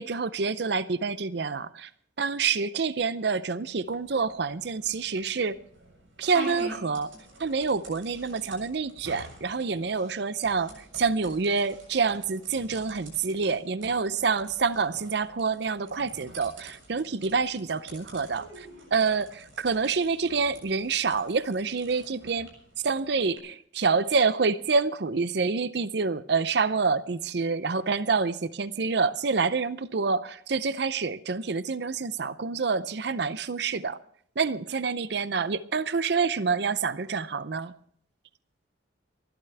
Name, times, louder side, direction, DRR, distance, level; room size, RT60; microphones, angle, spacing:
voice 1, 0.0-1.9 2.2-5.6 6.2-7.1 7.4-22.5 22.8-34.0 34.4-37.7, right 4 dB, 55° right, 0.5 m, -27 dB
sound 1, 3.8-23.4, right 1 dB, 80° right, 7.1 m, -47 dB
29.5 x 12.0 x 3.4 m
head